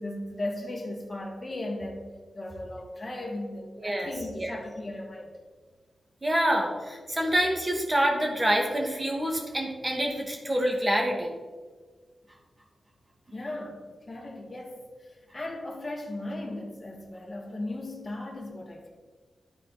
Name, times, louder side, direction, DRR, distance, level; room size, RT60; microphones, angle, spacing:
voice 1, 0.0-2.1 2.3-5.3 13.3-13.8 14.1-14.8 15.3-18.9, left 1 dB, 30° left, -2 dB, 1.9 m, -36 dB
voice 2, 3.8-4.6 6.2-11.3, equal, 25° right, 0 dB, 1.9 m, -27 dB
11.5 x 4.4 x 4.1 m, 1.5 s
cardioid pair, 70°, 0 cm